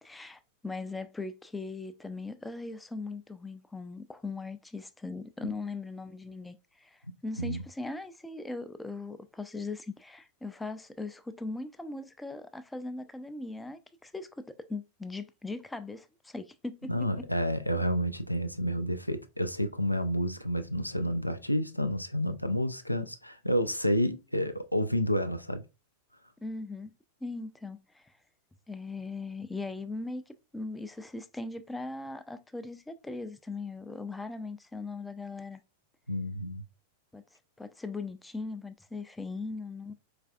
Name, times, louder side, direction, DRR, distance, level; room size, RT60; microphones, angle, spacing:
voice 1, 0.0-17.1 26.4-26.9 27.2-28.1 28.7-35.6 37.1-37.2 37.6-39.9, left 3 dB, 5° left, 0.3 m, -39 dB
voice 2, 16.9-25.6 36.1-36.6, equal, 90° left, 0.3 m, -30 dB
4.5 x 2.4 x 2.3 m
figure-of-eight pair, 90°, 0 cm